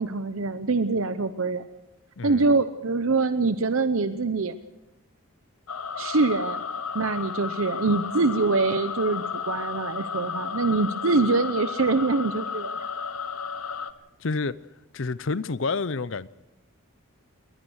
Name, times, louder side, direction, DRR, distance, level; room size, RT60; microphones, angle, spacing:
voice 1, 0.0-1.7 2.2-4.5 6.0-6.6 6.9-12.8, right 3 dB, 75° right, 0.8 m, -24 dB
voice 2, 2.2-2.5 14.2-14.6 14.9-16.3, left 4 dB, 60° left, 0.7 m, -29 dB
sound 1, 5.7-13.9, left 6 dB, 85° left, 1.1 m, -33 dB
21.5 x 19.0 x 6.4 m
head